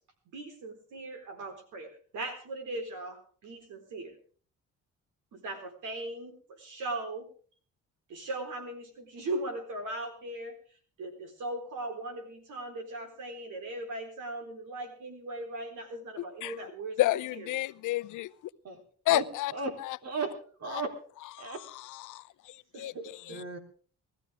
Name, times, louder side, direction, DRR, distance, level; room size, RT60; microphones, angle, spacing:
voice 1, 0.3-4.2 5.3-7.3 8.1-10.6 11.0-17.0 22.7-23.4, right 2 dB, 80° right, 4.1 m, -39 dB
voice 2, 16.2-16.6 17.0-18.5 19.1-19.5 19.8-20.0 20.7-20.8 21.4-23.4, left 16 dB, 80° left, 0.7 m, -32 dB
voice 3, 19.5-21.0 21.4-21.6 23.3-23.6, right 3 dB, 55° right, 3.7 m, -35 dB
20.5 x 14.0 x 3.5 m
cardioid pair, 90°, 30 cm